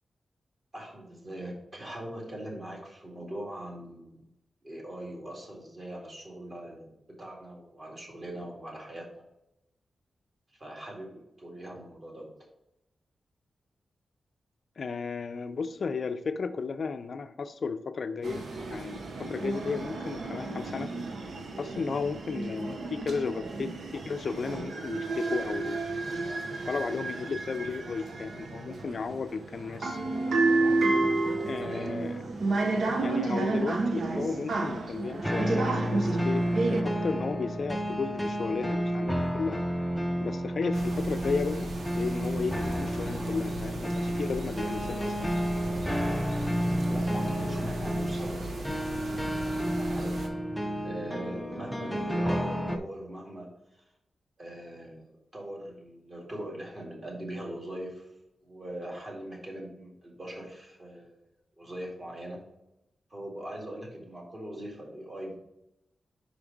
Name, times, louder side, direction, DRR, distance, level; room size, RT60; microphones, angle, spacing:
voice 1, 0.7-4.2 4.6-6.9 7.2-9.2 10.6-12.3 31.6-32.0 46.9-49.0 49.6-50.3 50.8-53.5 54.4-55.0 55.3-58.1 58.4-61.2 61.6-62.4 63.1-65.4, right 1 dB, 35° right, -2 dB, 2.1 m, -41 dB
voice 2, 14.8-18.4 18.7-20.9 21.6-25.8 26.6-30.0 31.5-32.2 33.0-39.6 40.2-41.7 42.0-45.3, left 5 dB, 55° left, 9 dB, 0.5 m, -34 dB
sound 1, 18.2-36.8, right 3 dB, 70° right, 0.8 m, -31 dB
sound 2, 35.2-52.8, equal, ahead, 0.5 m, -31 dB
sound 3, 40.7-50.3, right 1 dB, 85° right, 1.1 m, -40 dB
5.1 x 4.9 x 5.1 m, 0.85 s
wide cardioid pair, 130°, 0 cm